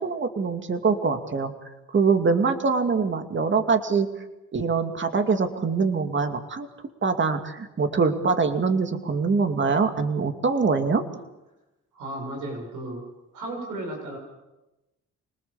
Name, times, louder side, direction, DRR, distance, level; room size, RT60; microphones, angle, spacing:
voice 1, 0.0-1.5 1.9-4.1 4.5-6.7 7.0-11.0, right 4 dB, 40° right, 7 dB, 2.5 m, -23 dB
voice 2, 11.9-13.0 13.3-14.2, right 1 dB, 90° right, 2 dB, 7.9 m, -34 dB
26.0 x 19.5 x 7.2 m, 0.98 s
cardioid pair, 90°, 30 cm